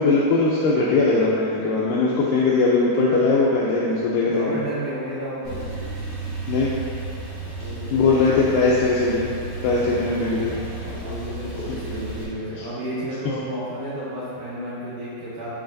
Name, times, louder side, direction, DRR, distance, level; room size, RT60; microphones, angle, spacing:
voice 1, 0.0-4.6 6.5-6.7 7.9-9.3 9.6-10.6 12.6-12.7, left 3 dB, 85° left, -5 dB, 1.9 m, -20 dB
voice 2, 4.2-5.7 7.4-8.3 9.9-15.5, right 1 dB, 75° right, -8 dB, 2.0 m, -32 dB
Male speech man speaking / Car / Idling, 5.4-12.2, right 2 dB, 55° right, 1.4 m, -33 dB
10.0 x 4.0 x 2.6 m, 2.6 s
omnidirectional pair, 4.4 m